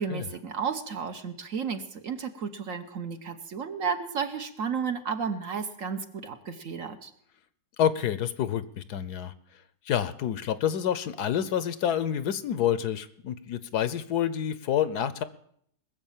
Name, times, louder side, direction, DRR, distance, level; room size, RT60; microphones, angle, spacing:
voice 1, 0.0-7.1, right 6 dB, 55° right, 7 dB, 1.3 m, -33 dB
voice 2, 7.8-9.3 9.9-15.2, left 9 dB, 70° left, 14 dB, 1.2 m, -28 dB
20.0 x 7.4 x 7.3 m, 0.67 s
omnidirectional pair, 1.8 m